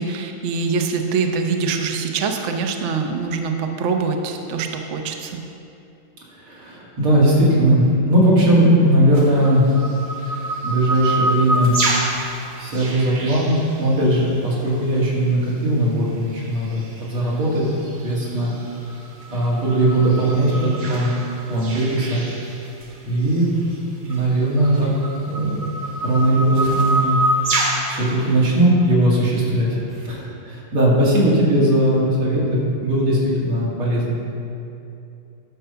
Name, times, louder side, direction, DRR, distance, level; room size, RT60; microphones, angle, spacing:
voice 1, 0.0-5.4, right 4 dB, 65° right, 4 dB, 0.7 m, -24 dB
voice 2, 6.3-9.6 10.6-11.8 12.6-17.6 18.0-18.5 19.3-21.1 21.5-22.2 23.0-23.5 24.0-24.9 25.2-25.6 26.0-27.2 27.9-34.2, right 1 dB, 85° right, -6 dB, 3.3 m, -19 dB
sound 1, 9.1-14.4 15.7-15.8 16.4-17.0 17.4-22.9 23.3-23.4 24.1-28.3, right 2 dB, 45° right, 1.4 m, -27 dB
10.5 x 7.0 x 5.6 m, 2.7 s
omnidirectional pair, 2.3 m